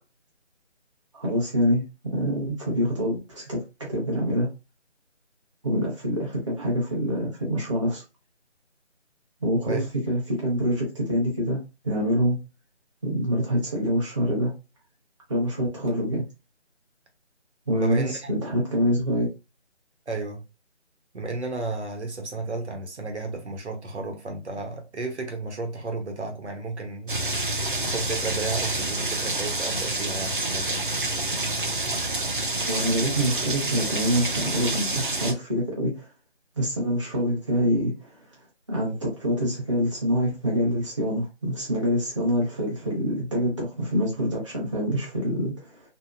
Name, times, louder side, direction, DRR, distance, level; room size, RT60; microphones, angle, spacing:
voice 1, 1.1-1.8 2.1-3.6 3.9-4.5 5.6-8.0 9.4-12.4 13.0-14.5 15.3-16.2 17.7-19.3 32.7-36.1 36.6-38.2 38.7-45.8, equal, 25° right, 0.8 m, -26 dB
voice 2, 17.7-18.3 20.1-20.4 21.1-27.5 27.8-30.9, right 3 dB, 70° right, 1.1 m, -33 dB
sound 1, 27.1-35.3, right 2 dB, 45° right, 0.4 m, -28 dB
2.9 x 2.8 x 2.5 m
figure-of-eight pair, 170°, 36 cm